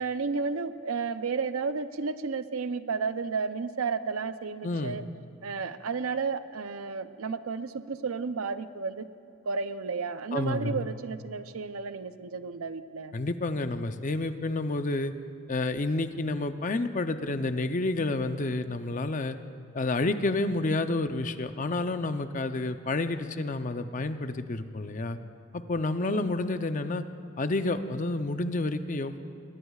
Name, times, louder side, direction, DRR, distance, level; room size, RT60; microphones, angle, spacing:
voice 1, 0.0-5.0 5.4-9.1 9.5-13.2 26.0-26.4, right 5 dB, 85° right, 11 dB, 0.6 m, -32 dB
voice 2, 4.6-5.0 10.3-10.9 13.1-15.1 15.5-19.4 19.7-25.2 25.5-27.0 27.4-29.2, left 2 dB, 40° left, 9 dB, 0.6 m, -29 dB
22.0 x 19.5 x 2.4 m, 2.7 s
head